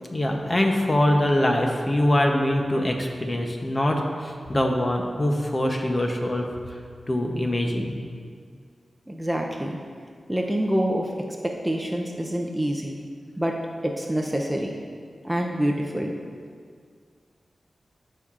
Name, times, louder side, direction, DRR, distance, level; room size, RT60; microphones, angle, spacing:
voice 1, 0.1-6.5 7.1-7.9, left 1 dB, 30° left, 2 dB, 0.8 m, -23 dB
voice 2, 9.1-9.8 10.3-11.1 11.4-13.0 13.4-13.6 13.8-14.8 15.2-16.1, equal, 10° right, 0 dB, 0.5 m, -26 dB
13.5 x 5.5 x 2.5 m, 2.1 s
wide cardioid pair, 110°, 0 cm